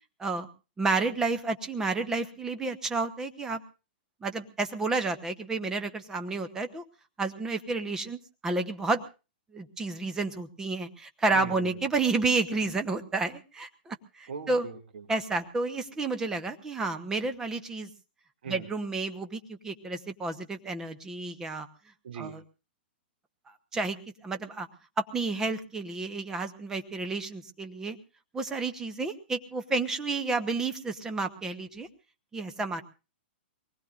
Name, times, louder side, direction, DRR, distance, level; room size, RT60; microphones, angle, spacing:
voice 1, 0.8-3.6 4.2-6.8 7.2-8.2 8.4-9.0 9.5-14.7 15.1-17.9 18.5-21.7 22.2-22.4 23.7-24.0 24.2-24.7 25.0-28.0 28.3-31.9 32.3-32.8, right 3 dB, 10° right, 8 dB, 0.9 m, -30 dB
voice 2, 11.3-11.7 14.3-15.1 18.4-18.7 22.0-22.4, right 6 dB, 65° right, 3 dB, 2.4 m, -40 dB
24.0 x 19.5 x 2.5 m, 0.31 s
hypercardioid pair, 160°, 6 cm